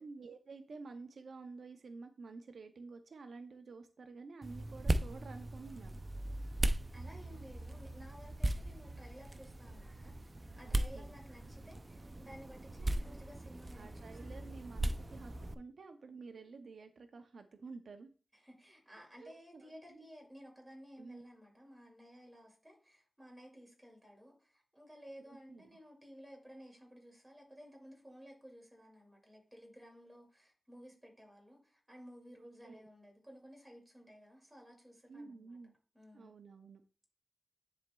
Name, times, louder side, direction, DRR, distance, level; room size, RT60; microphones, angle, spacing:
voice 1, 0.0-6.0 10.6-11.1 13.8-18.1 19.2-20.1 21.0-21.3 25.3-25.8 32.4-32.9 35.1-35.7 36.1-36.8, right 4 dB, 80° right, 7 dB, 0.5 m, -51 dB
sound 1, 4.4-15.5, right 1 dB, 30° right, 0.4 m, -38 dB
voice 2, 6.9-10.3 10.6-14.2 18.3-35.6 35.9-36.3, equal, 10° right, 0 dB, 2.3 m, -55 dB
10.0 x 4.2 x 2.2 m, 0.38 s
wide cardioid pair, 115°, 0 cm